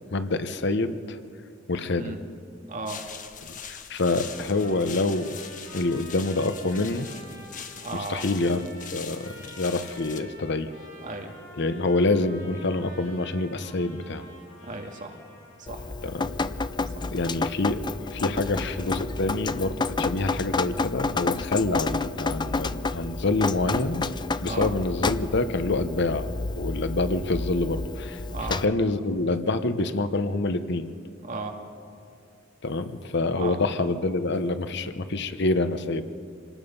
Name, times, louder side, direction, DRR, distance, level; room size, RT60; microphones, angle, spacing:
voice 1, 0.1-1.2 1.7-2.2 3.5-5.4 5.7-7.1 8.1-9.2 9.6-10.7 11.6-14.2 16.0-16.3 17.1-17.8 18.1-24.1 24.4-28.2 28.6-30.9 32.6-36.0, left 2 dB, 60° left, 11 dB, 0.9 m, -26 dB
voice 2, 2.7-3.0 7.8-8.2 11.0-11.3 14.6-15.2 15.7-15.9 16.9-17.1 24.4-24.7 28.3-28.6 31.2-31.5 33.3-33.6, right 3 dB, 40° right, 2 dB, 2.2 m, -35 dB
sound 1, 2.9-10.2, left 7 dB, 40° left, 1.3 m, -42 dB
Trumpet, 4.0-15.7, left 1 dB, 80° left, 7.6 m, -48 dB
Drip, 15.7-28.7, left 3 dB, 25° left, 0.5 m, -30 dB
26.5 x 19.0 x 5.5 m, 2.3 s
head